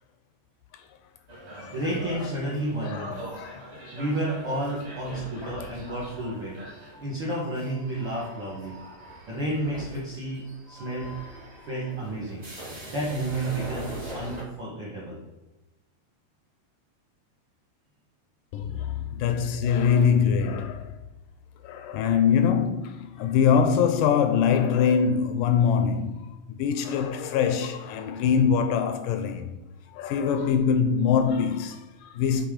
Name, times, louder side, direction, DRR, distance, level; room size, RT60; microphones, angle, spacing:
sound 1, 1.3-14.4, right 1 dB, 30° right, 0.6 m, -42 dB
voice 1, 1.7-3.2 3.9-6.6 7.0-8.8 9.3-11.1 11.7-12.4 12.9-15.2, right 1 dB, 70° right, 1.1 m, -31 dB
voice 2, 2.8-3.8 5.6-5.7 18.5-20.9 21.6-29.6 29.9-32.5, left 7 dB, 80° left, 2.0 m, -24 dB
Bowed string instrument, 18.6-22.8, left 8 dB, 85° right, 2.9 m, -40 dB
7.6 x 3.7 x 5.0 m
omnidirectional pair, 4.0 m